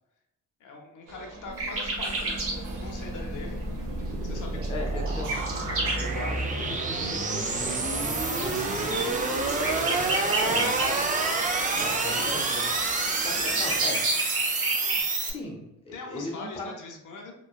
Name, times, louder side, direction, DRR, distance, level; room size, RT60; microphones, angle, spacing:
voice 1, 0.6-3.6 4.2-5.2 8.3-9.1 10.1-10.6 11.5-12.4 13.4-13.6 15.9-17.3, left 3 dB, 70° left, 1 dB, 0.7 m, -42 dB
sound 1, 1.1-13.8, right 1 dB, 75° right, 0.7 m, -45 dB
sound 2, 1.4-15.3, right 3 dB, 25° right, 0.4 m, -29 dB
sound 3, 1.6-2.6 3.0-3.1 4.4-6.1 7.0-7.2 7.9-11.3 11.6-15.0, right 2 dB, 45° right, 0.9 m, -31 dB
voice 2, 4.7-5.3 6.0-9.1 10.4-11.0 11.8-12.7 13.2-14.3 15.2-16.7, left 2 dB, 20° left, -1 dB, 0.6 m, -38 dB
3.0 x 2.2 x 2.3 m, 0.85 s
cardioid pair, 110°, 32 cm